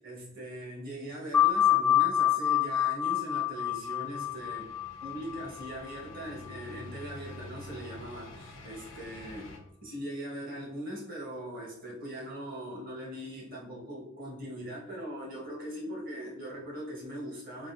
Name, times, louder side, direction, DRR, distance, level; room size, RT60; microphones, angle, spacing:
voice 1, 0.0-4.7 5.0-9.5 9.8-17.7, equal, 45° right, -4 dB, 1.4 m, -40 dB
sound 1, 1.3-6.5, left 11 dB, 10° left, 0.7 m, -27 dB
sound 2, 3.3-9.6, left 2 dB, 75° left, 0.8 m, -48 dB
3.8 x 3.0 x 2.8 m, 0.80 s
head